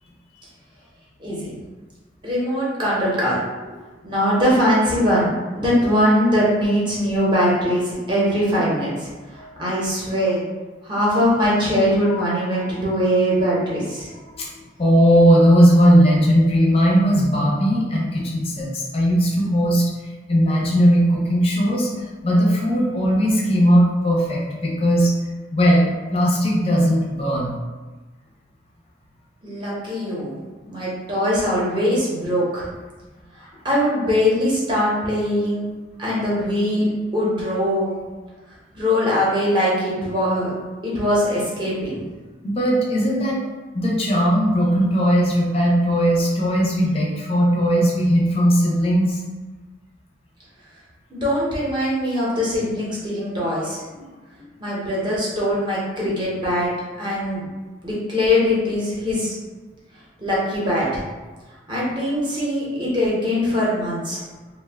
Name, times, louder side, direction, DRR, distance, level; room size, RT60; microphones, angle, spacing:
voice 1, 1.2-1.5 2.2-3.4 3.6-3.7 4.0-5.3 5.5-10.4 10.8-14.1 29.4-30.3 30.6-32.7 33.4-35.6 36.0-37.9 38.7-40.5 40.8-42.0 51.1-53.8 54.6-56.7 57.0-57.5 57.8-59.3 60.2-61.0 61.7-64.2, equal, 25° right, -7 dB, 0.7 m, -21 dB
voice 2, 14.8-19.8 20.3-21.9 22.2-25.1 25.5-27.5 42.4-43.4 43.7-49.2 53.9-54.0, equal, 30° left, -3 dB, 0.5 m, -18 dB
2.5 x 2.2 x 3.4 m, 1.3 s
head